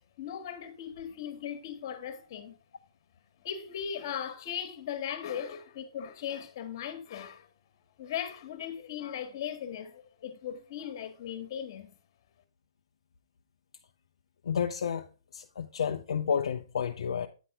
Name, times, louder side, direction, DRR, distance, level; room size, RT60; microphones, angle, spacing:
voice 1, 0.2-2.6 3.4-7.5 8.0-12.0, left 9 dB, 45° left, 1.6 m, -38 dB
voice 2, 14.4-15.0 15.3-17.3, left 7 dB, 70° left, 0.7 m, -30 dB
9.2 x 4.2 x 4.9 m
hypercardioid pair, 145°, 3 cm